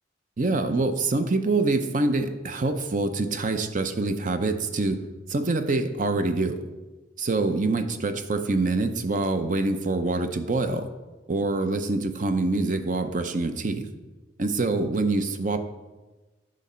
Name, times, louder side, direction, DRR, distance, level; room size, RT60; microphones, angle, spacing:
voice 1, 0.4-5.0 5.3-6.6 7.2-10.9 11.3-13.9 14.4-15.6, right 2 dB, 45° right, 8 dB, 0.6 m, -25 dB
10.5 x 5.2 x 4.3 m, 1.2 s
head